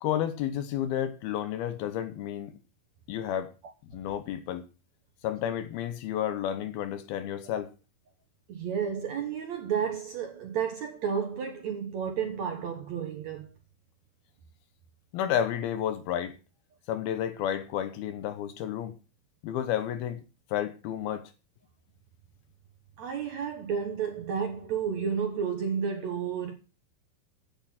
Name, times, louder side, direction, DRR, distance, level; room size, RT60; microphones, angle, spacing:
voice 1, 0.0-2.6 3.1-3.5 3.8-4.7 5.2-7.7 15.1-16.4 16.9-18.9 19.4-20.2 20.5-21.3, left 10 dB, 75° left, 2.7 m, -31 dB
voice 2, 8.5-13.5 23.0-26.5, right 7 dB, 60° right, 1.9 m, -31 dB
8.9 x 8.8 x 5.7 m
omnidirectional pair, 4.7 m